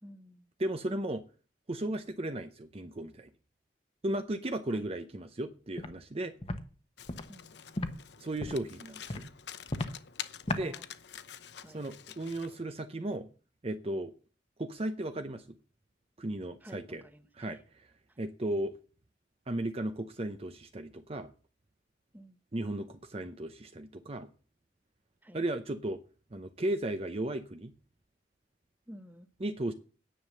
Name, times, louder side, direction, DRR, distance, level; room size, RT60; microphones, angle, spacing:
voice 1, 0.0-0.5 4.7-4.8 7.3-7.5 10.6-10.8 11.6-11.8 16.6-17.6 22.1-22.4 25.2-25.4 28.9-29.3, equal, 10° right, 9 dB, 1.1 m, -51 dB
voice 2, 0.6-1.2 1.7-3.3 4.0-6.3 8.2-9.3 10.5-10.7 11.7-13.3 13.6-14.1 14.6-15.4 16.2-17.0 17.3-17.9 18.2-18.7 19.5-21.3 22.5-24.3 25.3-26.0 26.3-27.7 29.4-29.7, right 1 dB, 35° right, 8 dB, 0.7 m, -35 dB
Walk footsteps, 5.8-5.9 6.4-6.6 7.1-7.2 7.8-7.9 8.4-8.6 9.1-9.2 9.7-9.9 10.5-10.6, left 2 dB, 35° left, 1.1 m, -34 dB
Domestic sounds home sounds, 7.0-12.6, left 9 dB, 70° left, 0.8 m, -47 dB
10.0 x 7.6 x 6.6 m, 0.37 s
head